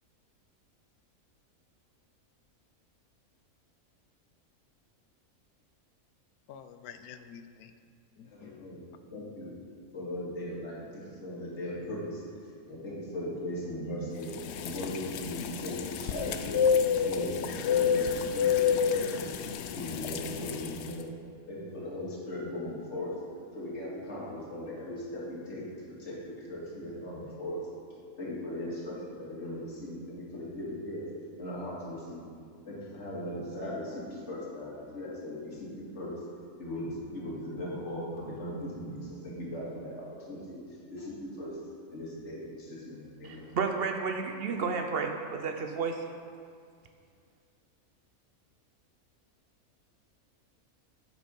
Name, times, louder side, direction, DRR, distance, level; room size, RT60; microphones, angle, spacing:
voice 1, 6.5-7.7 8.2-8.5, left 8 dB, 85° left, 10 dB, 1.1 m, -48 dB
voice 2, 8.2-8.8 9.1-9.6 9.9-12.2 12.7-14.3 14.6-16.6 17.0-19.4 19.7-21.1 21.5-23.1 23.5-27.6 28.2-31.0 31.4-32.3 32.7-36.1 36.6-40.6 40.9-41.6 41.9-43.5, left 1 dB, 50° left, -7 dB, 2.4 m, -38 dB
sound 1, 14.3-20.9, left 7 dB, 65° left, 0.7 m, -29 dB
voice 3, 43.2-46.0, right 5 dB, 55° right, 5 dB, 0.7 m, -32 dB
9.0 x 6.3 x 5.3 m, 2.2 s
omnidirectional pair, 1.5 m